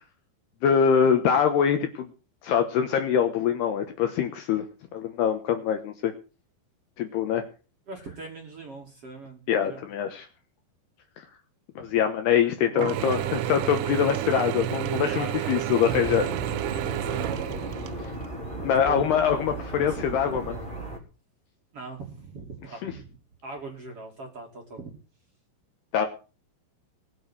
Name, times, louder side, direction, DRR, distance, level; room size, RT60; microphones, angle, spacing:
voice 1, 0.6-2.1 2.4-4.6 4.9-6.1 7.0-7.4 9.5-10.3 11.8-16.3 18.6-20.6 22.8-22.9 25.9-26.1, left 8 dB, 70° left, 7 dB, 2.7 m, -24 dB
voice 2, 7.9-9.8 11.8-12.0 12.4-13.4 15.0-15.6 16.7-17.6 18.6-20.5 21.7-23.2 23.4-24.9, right 3 dB, 35° right, 1 dB, 2.9 m, -41 dB
Mechanisms / Drill, 12.8-18.3, right 14 dB, 80° right, 3.2 m, -30 dB
sound 1, 15.9-21.0, right 2 dB, 10° right, 3.2 m, -36 dB
21.0 x 7.2 x 6.3 m, 0.35 s
omnidirectional pair, 5.8 m